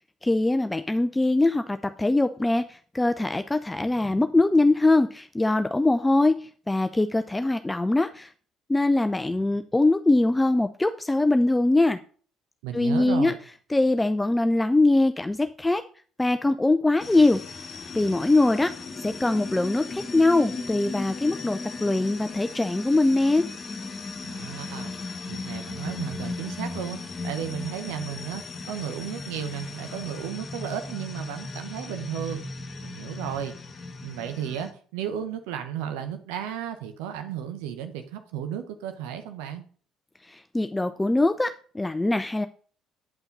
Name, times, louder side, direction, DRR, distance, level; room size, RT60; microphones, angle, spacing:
voice 1, 0.2-8.3 8.7-12.0 12.7-13.3 13.7-15.8 16.2-17.4 17.9-18.7 19.0-23.5 40.2-42.5, left 2 dB, 15° left, 10 dB, 0.5 m, -22 dB
voice 2, 12.6-13.4 24.2-32.5 32.8-33.5 34.0-39.6, right 9 dB, 70° right, 7 dB, 1.0 m, -34 dB
sound 1, 17.0-34.7, left 3 dB, 35° left, 1.4 m, -37 dB
9.3 x 5.7 x 4.0 m, 0.43 s
figure-of-eight pair, 55°, 0 cm